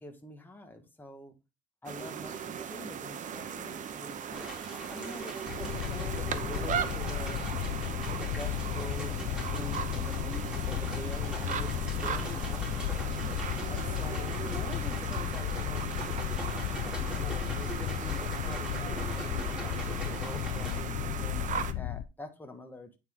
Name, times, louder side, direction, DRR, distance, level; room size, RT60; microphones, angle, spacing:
voice 1, 0.0-1.3 1.8-7.4 8.1-13.0 13.6-16.4 16.8-22.9, left 1 dB, 10° left, 4 dB, 1.5 m, -46 dB
sound 1, 1.9-21.7, right 8 dB, 50° right, 0.9 m, -38 dB
sound 2, 4.3-20.8, right 1 dB, 5° right, 3.3 m, -44 dB
sound 3, 5.5-22.0, left 12 dB, 85° left, 0.5 m, -34 dB
9.3 x 4.3 x 3.7 m, 0.27 s
cardioid pair, 110°, 17 cm